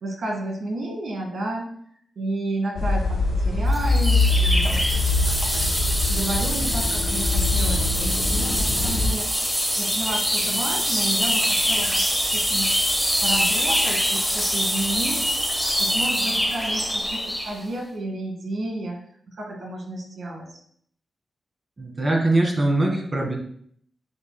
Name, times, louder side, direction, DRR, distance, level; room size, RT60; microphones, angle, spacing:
voice 1, 0.0-1.7 2.2-5.7 6.1-9.4 9.8-12.0 12.3-12.7 13.2-19.0 19.3-20.6, right 1 dB, 75° right, 1 dB, 2.0 m, -32 dB
sound 1, 2.8-9.1, left 2 dB, 80° left, 1.5 m, -23 dB
sound 2, 3.7-17.6, equal, 5° right, 1.2 m, -24 dB
voice 2, 21.8-23.4, right 2 dB, 35° right, -1 dB, 1.9 m, -22 dB
9.3 x 5.2 x 2.2 m, 0.62 s
cardioid pair, 80°, 0 cm